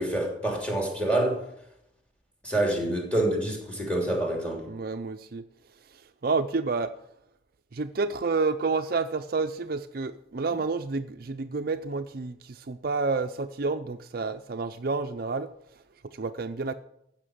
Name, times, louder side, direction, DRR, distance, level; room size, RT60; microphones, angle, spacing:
voice 1, 0.0-1.4 2.4-4.6, right 1 dB, 5° left, 3.2 m, -27 dB
voice 2, 4.7-5.4 5.9-6.9 7.7-15.5 16.1-16.7, right 4 dB, 50° right, 0.5 m, -29 dB
15.0 x 5.9 x 9.2 m
head